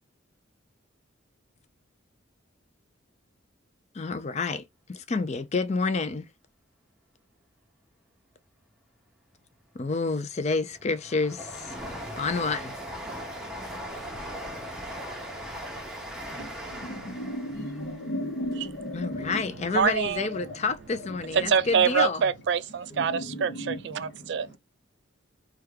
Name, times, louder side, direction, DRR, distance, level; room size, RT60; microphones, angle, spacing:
voice 1, 3.9-6.3 9.7-12.7 18.9-22.2, left 4 dB, 35° left, 0.4 m, -29 dB
Train, 10.0-20.2 20.6-21.5 21.7-21.8, equal, 5° right, 0.7 m, -40 dB
voice 2, 16.2-19.4 20.1-20.6 20.9-21.5 22.9-24.6, equal, 60° left, 0.8 m, -36 dB
voice 3, 19.7-20.3 21.3-24.6, right 6 dB, 60° right, 0.4 m, -25 dB
3.5 x 2.3 x 3.2 m
head